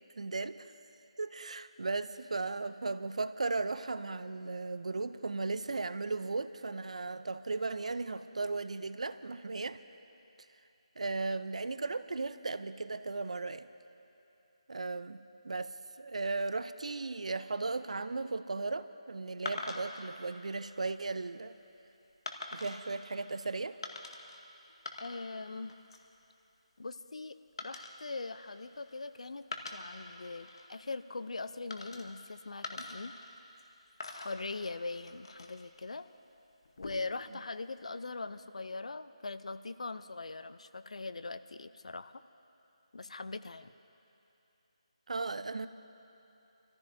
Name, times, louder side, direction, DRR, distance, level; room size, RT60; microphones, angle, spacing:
voice 1, 0.2-0.7 1.2-9.8 11.0-13.7 14.7-21.5 22.5-23.8 45.1-45.7, right 3 dB, 70° right, 13 dB, 0.5 m, -36 dB
sound 1, 19.5-20.1 20.8-21.1 22.3-22.9 23.8-24.4 24.7-25.4 25.7-26.1 27.6-29.0 29.4-30.7 31.7-32.3 32.6-33.7 34.0-35.7 36.6-37.2, left 3 dB, 50° left, 1.1 m, -44 dB
voice 2, 25.0-25.7 26.8-29.4 29.7-33.1 34.1-36.1 36.8-42.2 42.9-43.7, left 3 dB, 75° left, 13 dB, 0.5 m, -41 dB
28.0 x 14.0 x 2.7 m, 2.9 s
figure-of-eight pair, 165°, 4 cm